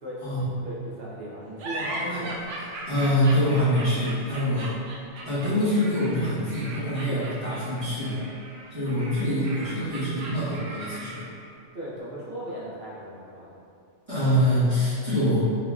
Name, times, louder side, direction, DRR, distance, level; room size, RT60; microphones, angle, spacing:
voice 1, 0.6-2.3 7.1-7.3 11.7-13.5, equal, 60° right, -6 dB, 1.0 m, -37 dB
sound 1, 1.6-11.4, right 1 dB, 85° right, 0.9 m, -38 dB
voice 2, 1.9-2.5 2.9-4.7 5.2-8.2 8.7-11.3 14.1-15.4, equal, 30° right, -16 dB, 1.2 m, -25 dB
4.0 x 2.8 x 2.3 m, 2.4 s
omnidirectional pair, 1.2 m